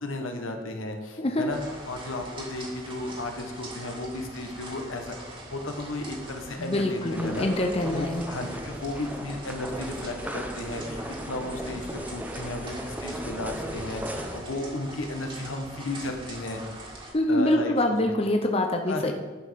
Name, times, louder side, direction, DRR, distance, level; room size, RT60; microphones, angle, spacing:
voice 1, 0.0-1.6 1.9-5.2 5.5-16.6 17.3-17.7 18.0-18.1 18.9-19.0, left 2 dB, 80° left, 4 dB, 1.4 m, -34 dB
sound 1, 1.5-17.1, right 1 dB, 25° right, 1.9 m, -43 dB
voice 2, 6.6-8.2 17.1-19.1, left 1 dB, 30° left, 3 dB, 0.7 m, -25 dB
sound 2, 7.1-14.4, equal, 10° right, 0.7 m, -37 dB
11.0 x 5.2 x 5.7 m, 1.3 s
head